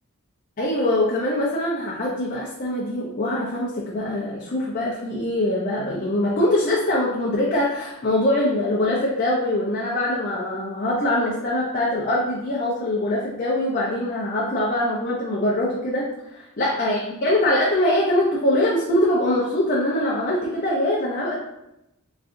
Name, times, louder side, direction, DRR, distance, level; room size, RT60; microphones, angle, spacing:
voice 1, 0.6-16.1 16.6-21.3, left 1 dB, 40° left, -5 dB, 0.5 m, -23 dB
3.6 x 3.2 x 2.6 m, 0.87 s
head